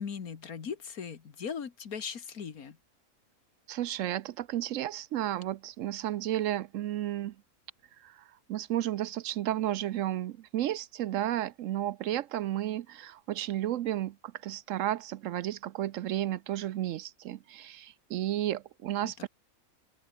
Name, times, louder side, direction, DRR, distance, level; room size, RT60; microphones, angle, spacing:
voice 1, 0.0-2.8 19.0-19.3, left 6 dB, 80° left, 2.1 m, -39 dB
voice 2, 3.7-7.4 8.0-19.3, right 12 dB, 70° right, 0.9 m, -33 dB
open air
omnidirectional pair, 1.5 m